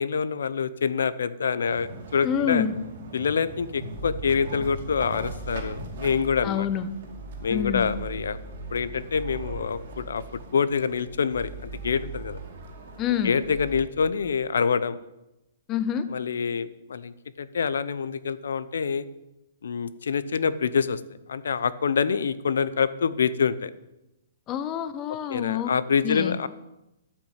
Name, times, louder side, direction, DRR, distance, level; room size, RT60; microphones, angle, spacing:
voice 1, 0.0-2.6 3.1-6.7 7.4-8.4 8.7-10.2 10.5-11.5 11.8-12.4 13.2-15.0 16.1-19.0 19.6-21.0 21.3-23.7 25.3-26.5, left 6 dB, 85° left, 16 dB, 0.7 m, -26 dB
sound 1, 1.6-13.8, right 3 dB, 45° right, 2.4 m, -43 dB
voice 2, 2.2-2.7 6.4-6.9 7.5-7.9 13.0-13.3 15.7-16.1 24.5-25.7 26.0-26.4, left 9 dB, 15° left, 12 dB, 0.5 m, -27 dB
sound 2, 3.9-14.1, right 3 dB, 40° left, 5.5 m, -40 dB
13.0 x 6.1 x 8.0 m, 0.93 s
hypercardioid pair, 175°, 0 cm